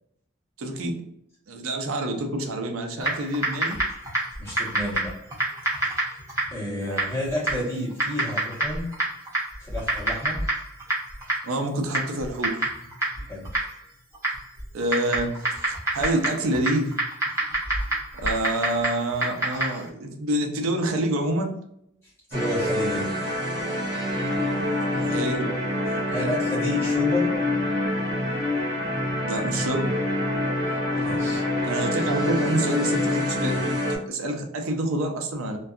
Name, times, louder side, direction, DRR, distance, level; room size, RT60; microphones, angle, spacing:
voice 1, 0.6-0.9 1.5-3.8 6.6-7.2 11.4-12.5 14.7-16.9 18.1-21.5 24.9-25.5 26.1-26.3 29.2-30.0 31.0-31.1 31.6-35.6, right 1 dB, 85° right, 3 dB, 0.5 m, -27 dB
Typing, 3.0-19.9, right 2 dB, 15° right, 0.8 m, -29 dB
voice 2, 4.4-5.1 6.5-8.9 9.6-10.4 13.3-13.5 22.3-23.1 25.9-27.3 31.0-31.4, equal, 10° left, -7 dB, 1.0 m, -30 dB
sound 1, 22.3-34.0, left 1 dB, 55° right, 0.8 m, -26 dB
2.6 x 2.3 x 2.3 m, 0.75 s
head